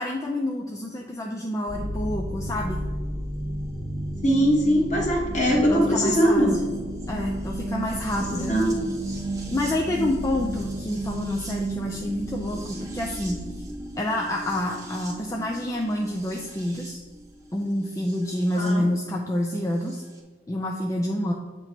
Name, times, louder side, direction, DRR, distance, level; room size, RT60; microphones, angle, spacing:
voice 1, 0.0-2.8 5.7-6.5 7.1-8.5 9.5-13.4 14.0-17.0 17.5-20.0 20.5-21.3, left 1 dB, 15° left, 0 dB, 0.3 m, -28 dB
sound 1, 1.7-18.7 19.9-20.0, right 1 dB, 20° right, 0.8 m, -33 dB
voice 2, 4.2-6.6 8.2-8.9 18.5-18.9, equal, 40° left, -1 dB, 1.2 m, -21 dB
7.7 x 3.0 x 4.2 m, 1.4 s
head